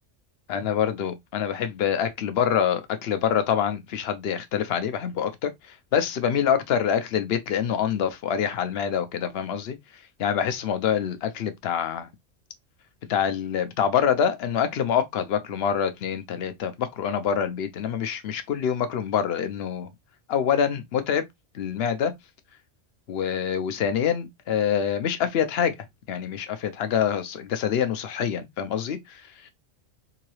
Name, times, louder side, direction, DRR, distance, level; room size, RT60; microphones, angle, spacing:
voice 1, 0.5-9.8 10.2-12.1 13.1-19.9 20.3-21.2 21.5-22.1 23.1-25.8 26.1-29.5, left 8 dB, 60° left, 0.8 m, -26 dB
3.8 x 2.7 x 3.1 m
omnidirectional pair, 1.3 m